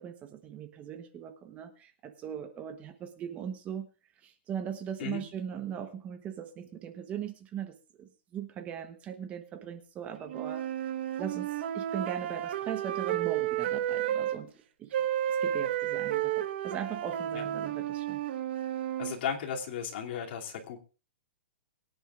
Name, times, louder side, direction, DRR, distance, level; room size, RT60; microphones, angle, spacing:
voice 1, 0.0-3.9 4.2-10.6 11.2-11.5 11.7-14.5 14.8-15.0 15.3-18.2, right 8 dB, 20° right, 9 dB, 1.0 m, -39 dB
sound 1, 10.3-14.4 14.9-19.1, right 11 dB, 55° right, 1.3 m, -32 dB
voice 2, 19.0-20.8, left 7 dB, 50° left, 0 dB, 2.7 m, -35 dB
23.0 x 10.0 x 2.5 m, 0.35 s
hypercardioid pair, 155°, 7 cm